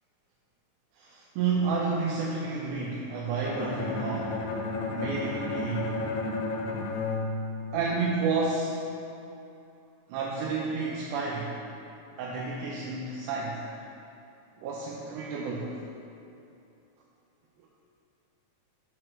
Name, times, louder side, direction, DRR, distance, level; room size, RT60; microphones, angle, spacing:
voice 1, 0.9-4.4 4.9-6.0 7.7-8.9 10.1-11.6 12.2-13.8 14.6-15.8, right 4 dB, 90° right, -4 dB, 2.1 m, -31 dB
Bowed string instrument, 3.4-8.4, left 3 dB, 80° left, 2.1 m, -33 dB
6.3 x 4.4 x 6.4 m, 2.8 s
omnidirectional pair, 3.5 m